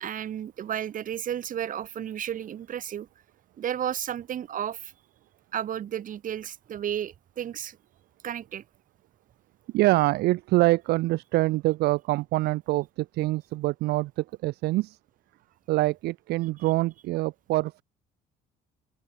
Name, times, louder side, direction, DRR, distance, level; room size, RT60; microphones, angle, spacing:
voice 1, 0.0-3.1 3.6-4.9 5.5-7.8 8.2-8.6, right 10 dB, 50° right, 2.8 m, -33 dB
voice 2, 9.7-15.0 15.7-17.8, right 18 dB, 75° right, 0.5 m, -25 dB
open air
cardioid pair, 110°, 17 cm